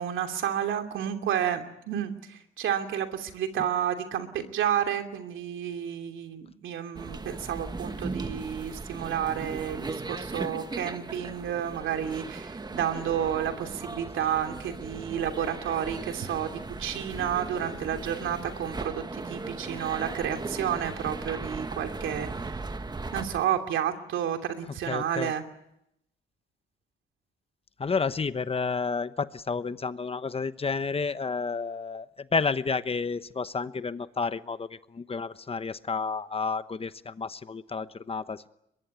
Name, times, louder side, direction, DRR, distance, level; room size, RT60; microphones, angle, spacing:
voice 1, 0.0-22.3 23.1-25.4, right 9 dB, 80° right, 6 dB, 2.9 m, -31 dB
sound 1, 6.9-23.4, right 3 dB, 20° right, 1.4 m, -37 dB
voice 2, 24.9-25.3 27.8-38.5, left 4 dB, 30° left, 13 dB, 1.0 m, -31 dB
23.0 x 21.5 x 9.5 m, 0.81 s
cardioid pair, 90°, 20 cm